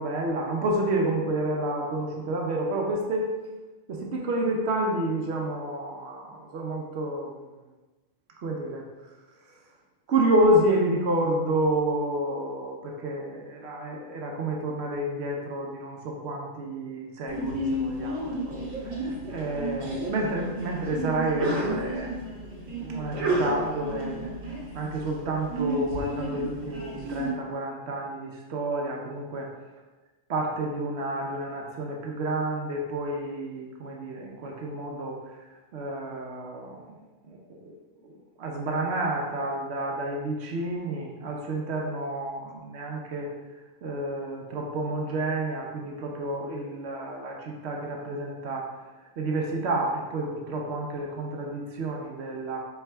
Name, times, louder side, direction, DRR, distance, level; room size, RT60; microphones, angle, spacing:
voice 1, 0.0-3.3 3.9-7.3 8.4-8.9 10.1-18.6 19.0-22.3 22.8-24.3 24.7-29.5 30.3-35.2 35.7-36.8 37.3-37.7 38.0-38.1 38.4-43.3 43.8-48.7 49.2-52.6, right 1 dB, 60° right, 0 dB, 0.8 m, -29 dB
Sneeze, 17.3-27.3, right 1 dB, 90° right, 1.4 m, -32 dB
4.5 x 4.0 x 2.2 m, 1.2 s
omnidirectional pair, 1.4 m